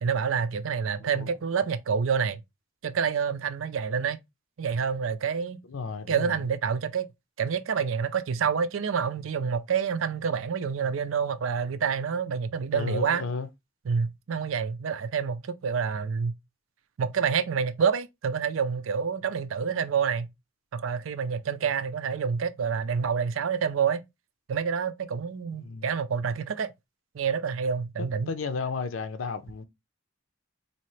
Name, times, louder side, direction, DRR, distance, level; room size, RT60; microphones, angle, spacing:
voice 1, 0.0-2.4 2.8-4.2 4.6-5.6 6.1-7.1 7.4-13.2 13.9-16.3 17.0-20.3 20.7-24.0 24.5-26.7 27.1-28.3, right 6 dB, 85° right, 0.5 m, -28 dB
voice 2, 1.0-1.4 5.6-6.5 12.7-13.5 25.6-25.9 28.0-29.6, left 4 dB, 85° left, 0.6 m, -33 dB
4.1 x 2.8 x 3.1 m
head